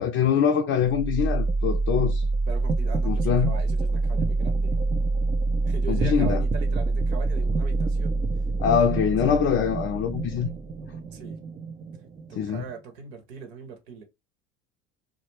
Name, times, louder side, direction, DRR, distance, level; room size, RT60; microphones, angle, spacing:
voice 1, 0.0-2.2 3.0-3.5 5.9-6.4 8.6-10.5 12.4-12.6, left 8 dB, 40° left, 0.5 m, -23 dB
sound 1, 0.8-12.7, right 3 dB, 20° right, 0.3 m, -26 dB
voice 2, 2.5-4.7 5.7-8.3 8.6-9.0 9.3-9.4 11.1-11.4 12.3-14.0, right 6 dB, 75° right, 0.8 m, -40 dB
2.2 x 2.0 x 3.1 m
hypercardioid pair, 70°, 32 cm